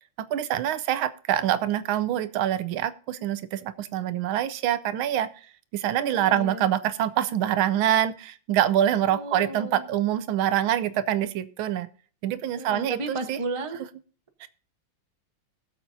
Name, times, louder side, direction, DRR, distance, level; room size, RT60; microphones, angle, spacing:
voice 1, 0.3-5.3 5.7-11.9 12.2-13.4 14.4-14.5, right 11 dB, 85° right, 13 dB, 1.5 m, -25 dB
voice 2, 6.1-6.7 9.0-9.8 12.6-13.8, right 2 dB, 20° right, 6 dB, 0.8 m, -34 dB
20.0 x 7.3 x 2.7 m, 0.42 s
omnidirectional pair, 2.2 m